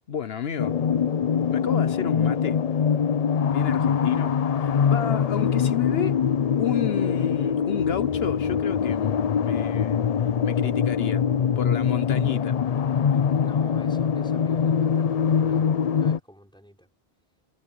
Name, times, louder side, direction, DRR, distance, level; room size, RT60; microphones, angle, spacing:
voice 1, 0.1-0.7 1.5-2.6 3.5-6.2 6.6-10.0 10.4-11.2 11.6-12.6, left 9 dB, 75° left, 1.1 m, -31 dB
sound 1, 0.6-16.2, left 7 dB, 50° left, 0.5 m, -23 dB
voice 2, 13.4-16.9, equal, 5° left, 5.2 m, -49 dB
omnidirectional pair, 1.1 m